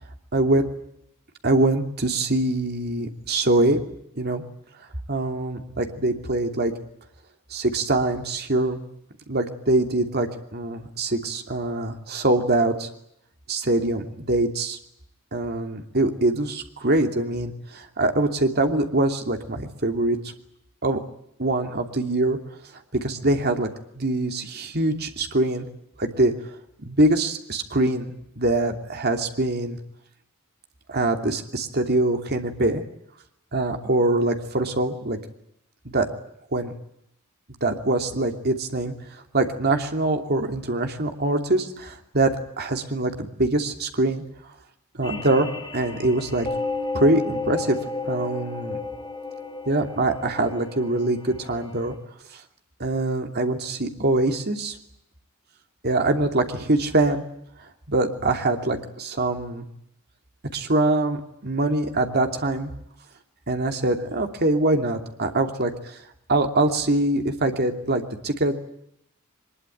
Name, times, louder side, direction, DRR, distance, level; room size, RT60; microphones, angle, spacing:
voice 1, 0.3-0.6 1.4-3.8 4.2-4.4 5.1-6.7 7.5-8.8 9.3-12.9 13.5-14.8 15.3-20.3 20.8-21.0 21.4-22.4 22.9-23.7 24.0-25.7 26.0-26.3 26.8-29.8 30.9-32.8 33.5-35.2 35.8-36.1 36.5-36.7 37.6-38.9 39.3-44.2 44.9-45.5 45.7-46.5 46.9-47.8 48.0-48.8 49.7-51.9 52.3-52.4 52.8-54.8 55.8-57.2 57.9-59.6 60.5-62.7 63.5-66.0 66.3-68.5, right 2 dB, 50° right, 5 dB, 2.8 m, -23 dB
sound 1, 45.0-51.9, left 3 dB, 20° left, 5.5 m, -33 dB
23.5 x 21.0 x 9.3 m, 0.79 s
head